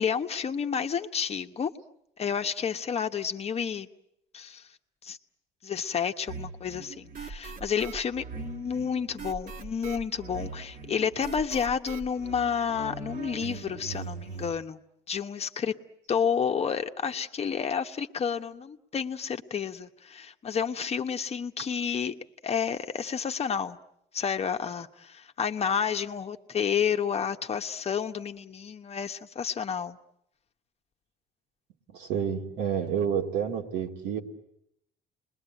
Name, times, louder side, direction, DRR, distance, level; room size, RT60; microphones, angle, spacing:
voice 1, 0.0-1.7 2.2-3.9 4.3-4.6 5.0-5.2 5.6-14.8 15.1-15.8 16.1-22.1 22.4-23.8 24.1-30.0, left 7 dB, 35° left, 7 dB, 1.1 m, -30 dB
sound 1, 6.3-14.5, right 5 dB, 55° right, 1.8 m, -41 dB
voice 2, 31.9-34.2, right 8 dB, 85° right, 2 dB, 2.4 m, -29 dB
30.0 x 21.5 x 9.1 m, 0.79 s
cardioid pair, 110°, 17 cm